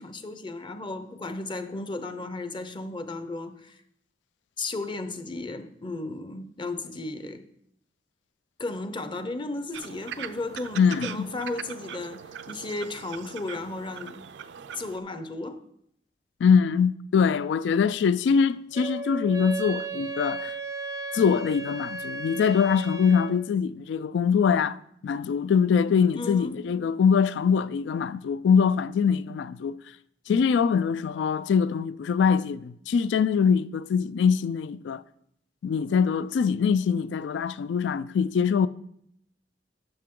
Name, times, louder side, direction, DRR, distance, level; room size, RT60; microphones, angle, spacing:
voice 1, 0.0-3.8 4.6-7.4 8.6-14.2 14.8-15.6 26.1-26.6, left 2 dB, 25° left, 0.6 m, -34 dB
sound 1, 9.7-15.0, right 8 dB, 75° right, 0.4 m, -41 dB
voice 2, 10.8-11.3 16.4-20.5 21.1-29.8 30.3-35.0 35.6-38.7, left 6 dB, 80° left, 0.3 m, -23 dB
Wind instrument woodwind instrument, 18.7-23.4, right 4 dB, 20° right, 0.4 m, -35 dB
12.0 x 5.9 x 3.7 m
head